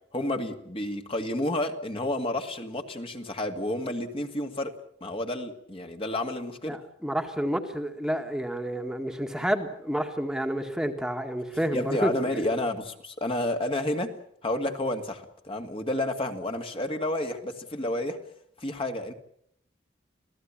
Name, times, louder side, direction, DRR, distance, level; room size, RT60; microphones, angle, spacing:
voice 1, 0.1-4.7 5.0-6.8 11.7-14.1 14.4-18.2 18.6-19.1, left 1 dB, 30° left, 5 dB, 2.2 m, -30 dB
voice 2, 6.7-12.4, equal, 5° right, 4 dB, 1.9 m, -29 dB
27.5 x 17.0 x 8.8 m, 0.69 s
head